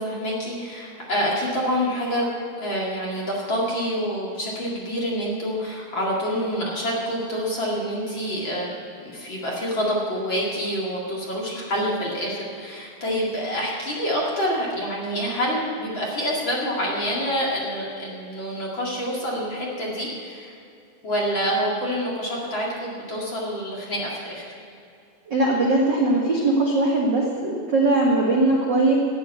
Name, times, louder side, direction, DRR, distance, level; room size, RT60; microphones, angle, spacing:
voice 1, 0.0-2.3 2.6-8.7 9.0-20.5 21.0-24.5, equal, 35° left, -4 dB, 2.3 m, -27 dB
voice 2, 25.3-29.0, right 2 dB, 70° right, -3 dB, 1.0 m, -20 dB
13.5 x 8.5 x 8.4 m, 2.6 s
omnidirectional pair, 4.7 m